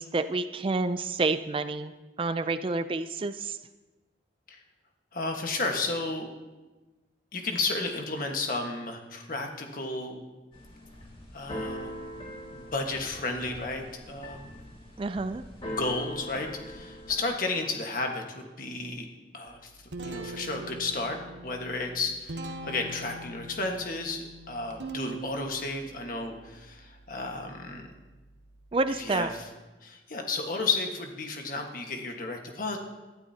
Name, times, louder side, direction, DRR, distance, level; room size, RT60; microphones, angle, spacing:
voice 1, 0.0-1.9 2.2-3.6 15.0-15.4 28.7-29.3, right 3 dB, 30° right, 12 dB, 0.4 m, -29 dB
voice 2, 5.1-6.3 7.3-10.2 11.3-12.0 12.5-14.6 15.7-19.1 19.3-27.9 28.9-29.5 29.8-32.8, left 3 dB, 50° left, 3 dB, 1.4 m, -33 dB
Keyboard (musical), 10.5-17.3, equal, 30° left, 2.1 m, -41 dB
Guitar, 19.5-29.2, right 2 dB, 80° right, 0.9 m, -43 dB
19.5 x 12.0 x 2.8 m, 1.2 s
head